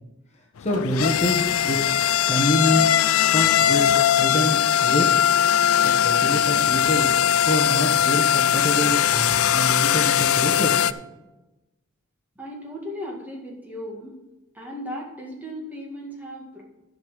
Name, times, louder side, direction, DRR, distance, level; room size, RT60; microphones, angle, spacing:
sound 1, 0.6-10.9, left 10 dB, 75° left, 0.4 m, -20 dB
voice 1, 0.6-1.8 2.3-2.9 3.3-5.1 5.8-7.1 7.5-10.7, left 1 dB, 30° left, -2 dB, 1.4 m, -26 dB
voice 2, 12.4-14.2 14.5-16.6, equal, 10° right, -3 dB, 2.0 m, -36 dB
12.0 x 5.4 x 6.3 m, 1.0 s
head